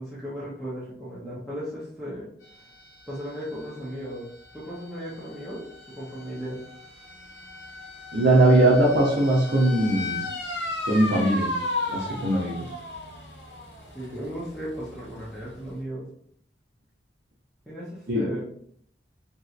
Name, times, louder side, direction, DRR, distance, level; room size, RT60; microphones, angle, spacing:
voice 1, 0.0-2.3 3.1-4.3 4.5-6.6 12.3-12.5 13.9-16.1 17.7-18.5, equal, 5° left, -9 dB, 0.6 m, -36 dB
sound 1, 2.4-15.8, left 2 dB, 70° left, 0.8 m, -36 dB
voice 2, 8.1-10.2 10.9-11.5 11.9-12.6 18.1-18.2, right 1 dB, 65° right, -5 dB, 0.7 m, -20 dB
2.9 x 2.8 x 2.4 m, 0.65 s
head